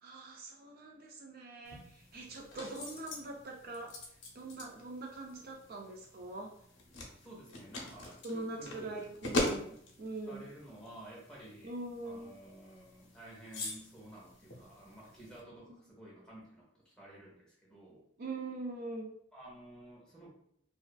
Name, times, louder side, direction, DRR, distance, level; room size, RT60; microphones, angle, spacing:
voice 1, 0.0-4.0 4.3-6.5 8.2-10.5 11.6-12.4 15.7-15.9 18.2-19.1, right 2 dB, 50° right, 0 dB, 0.3 m, -43 dB
sound 1, 1.6-15.4, left 1 dB, 75° left, 0.6 m, -43 dB
voice 2, 7.2-9.1 10.3-11.7 12.0-18.1 19.3-20.3, right 1 dB, 5° left, -5 dB, 0.7 m, -52 dB
2.4 x 2.3 x 2.2 m, 0.69 s
head